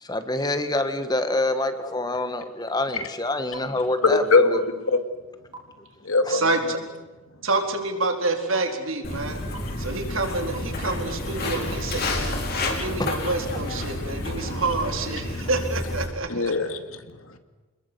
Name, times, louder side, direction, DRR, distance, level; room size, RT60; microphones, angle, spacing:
voice 1, 0.0-4.6 13.0-13.1, left 2 dB, 20° left, 9 dB, 1.7 m, -26 dB
sound 1, 3.5-3.6 4.5-4.6 5.5-5.6 6.5-6.6 7.5-7.6 8.5-8.6 9.5-9.6 10.5-10.6 11.5-11.6 12.5-12.6, right 5 dB, 20° right, 4.1 m, -38 dB
voice 2, 4.0-4.6 4.9-5.0 6.0-6.4 15.4-15.5 16.3-17.4, left 3 dB, 75° left, 8 dB, 2.5 m, -22 dB
voice 3, 6.3-6.8 7.4-9.4 9.8-16.4, right 3 dB, 65° right, 4 dB, 4.1 m, -28 dB
Walk footsteps, 9.0-16.1, left 2 dB, 45° left, 5.2 m, -30 dB
29.0 x 21.0 x 8.2 m, 1.2 s
head